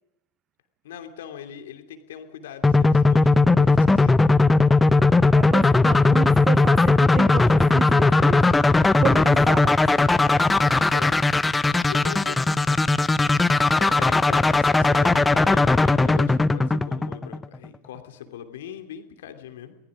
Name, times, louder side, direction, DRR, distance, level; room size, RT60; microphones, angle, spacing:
voice 1, 0.8-4.1 10.7-11.1 11.9-12.5 13.7-19.8, left 9 dB, 55° left, 2.9 m, -40 dB
sound 1, 2.6-17.6, left 3 dB, 10° left, 0.7 m, -18 dB
voice 2, 5.3-8.6 9.0-9.9, right 9 dB, 30° right, 0.8 m, -31 dB
30.0 x 20.0 x 5.1 m
figure-of-eight pair, 90°, 0 cm